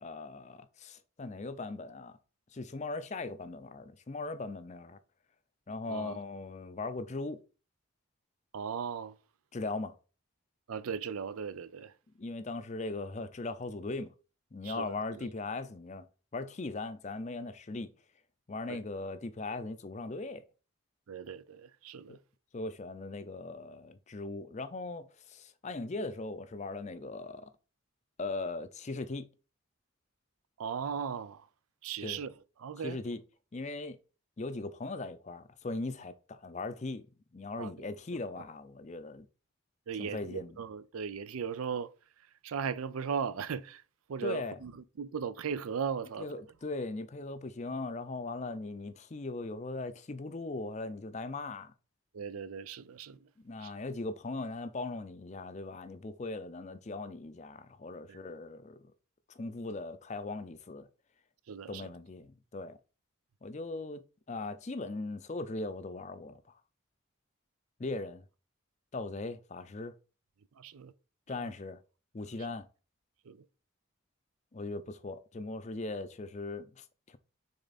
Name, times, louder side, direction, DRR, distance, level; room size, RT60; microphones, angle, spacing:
voice 1, 0.0-2.2 2.5-5.0 5.7-7.4 9.5-9.9 12.2-14.1 14.5-16.1 16.3-17.9 18.5-20.5 22.1-22.2 22.5-27.5 28.2-29.3 32.0-32.2 32.8-33.2 33.5-34.0 34.4-37.1 37.3-39.3 40.0-40.6 44.2-44.6 46.2-51.7 53.4-58.9 59.3-60.9 61.7-62.8 63.4-66.6 67.8-68.2 68.9-69.9 71.3-71.8 72.1-72.7 74.5-77.2, left 3 dB, 35° left, 0.5 m, -39 dB
voice 2, 5.9-6.2 8.5-9.2 10.7-11.9 14.6-15.3 18.7-18.8 21.1-22.2 30.6-31.5 31.8-32.3 32.6-33.0 37.6-37.9 39.9-41.9 42.4-43.8 44.1-46.4 52.1-53.3 53.6-53.7 58.1-58.2 61.5-61.9 70.6-70.9 73.2-73.4, right 6 dB, 80° right, 0.5 m, -38 dB
6.6 x 3.5 x 4.0 m
head